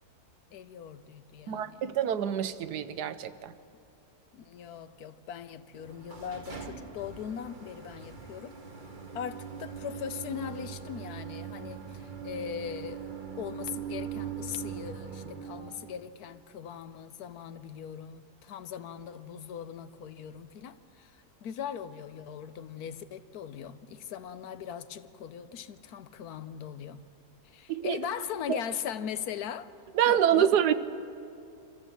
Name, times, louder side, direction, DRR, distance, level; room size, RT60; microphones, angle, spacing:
voice 1, 0.5-1.9 4.3-8.6 9.1-13.0 13.4-27.0 27.4-29.7 30.1-30.5, left 8 dB, 75° left, 1.2 m, -40 dB
voice 2, 1.5-3.5 27.7-28.0 28.5-28.6 30.0-30.7, right 10 dB, 80° right, 1.3 m, -26 dB
sound 1, 5.7-16.1, right 7 dB, 35° right, 1.3 m, -41 dB
25.0 x 14.5 x 7.7 m
omnidirectional pair, 1.7 m